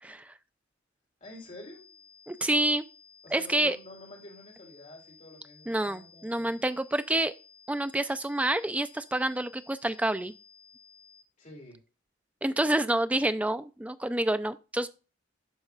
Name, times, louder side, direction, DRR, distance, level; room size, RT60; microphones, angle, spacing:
voice 1, 0.0-0.3 2.3-2.8 3.3-3.8 5.7-7.3 7.7-10.3 12.4-14.9, right 1 dB, 5° right, 0.3 m, -28 dB
voice 2, 1.2-1.9 3.2-6.5 11.4-11.8, left 1 dB, 40° left, 3.5 m, -48 dB
sound 1, 1.2-11.2, left 6 dB, 20° left, 1.7 m, -56 dB
12.0 x 4.1 x 2.4 m
head